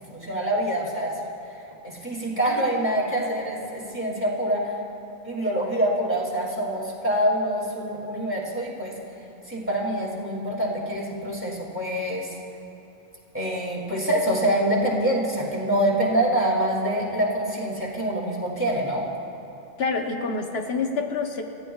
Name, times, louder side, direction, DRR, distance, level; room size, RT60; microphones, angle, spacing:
voice 1, 0.1-1.1 1.8-4.8 5.2-8.9 9.5-12.3 13.3-19.1, right 1 dB, 10° right, -5 dB, 2.5 m, -25 dB
voice 2, 19.8-21.4, left 4 dB, 75° left, 3 dB, 1.1 m, -27 dB
29.0 x 15.0 x 2.3 m, 2.9 s
omnidirectional pair, 1.1 m